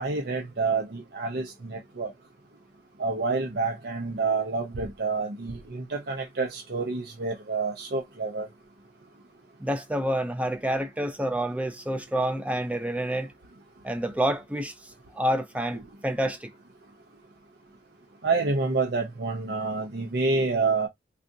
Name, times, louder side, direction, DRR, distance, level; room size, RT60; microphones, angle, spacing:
voice 1, 0.0-2.1 3.0-8.5 18.2-20.9, right 4 dB, 65° right, 0.6 m, -28 dB
voice 2, 9.6-13.3 13.8-16.5, right 1 dB, 10° right, 0.5 m, -28 dB
3.6 x 2.4 x 2.6 m
head